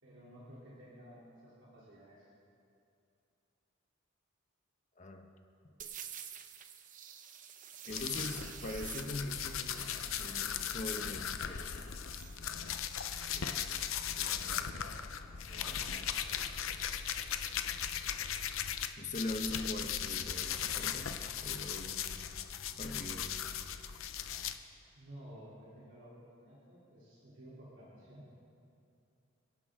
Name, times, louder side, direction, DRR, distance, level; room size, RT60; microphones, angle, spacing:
voice 1, 0.0-2.3 13.3-13.7 14.1-15.0 15.4-16.0 24.9-28.3, equal, 60° right, -9 dB, 3.2 m, -54 dB
voice 2, 5.0-5.3 7.9-9.8 10.2-11.9 19.0-22.2 22.8-23.4, left 1 dB, 35° left, 4 dB, 1.1 m, -42 dB
sound 1, 5.8-12.4, right 8 dB, 40° right, 0.8 m, -49 dB
sound 2, 7.9-18.9 19.1-24.5, left 8 dB, 80° left, 0.7 m, -38 dB
29.0 x 11.0 x 3.7 m, 2.6 s
head